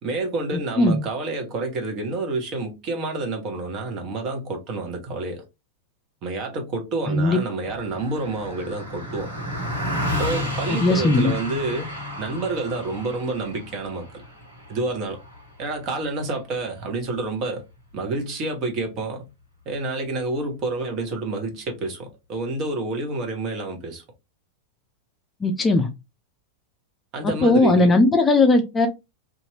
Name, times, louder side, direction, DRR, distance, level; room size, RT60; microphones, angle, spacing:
voice 1, 0.0-5.4 6.2-9.3 10.2-11.9 12.2-14.2 14.7-15.2 15.6-17.6 17.9-19.3 19.7-24.0 27.1-28.0, right 2 dB, 35° right, 1.0 m, -28 dB
voice 2, 7.1-7.4 10.8-11.3 25.4-25.9 27.4-28.9, left 2 dB, 15° left, 0.5 m, -18 dB
Car passing by, 7.6-17.2, left 1 dB, 75° right, 1.2 m, -32 dB
2.8 x 2.4 x 2.8 m
figure-of-eight pair, 90°, 0 cm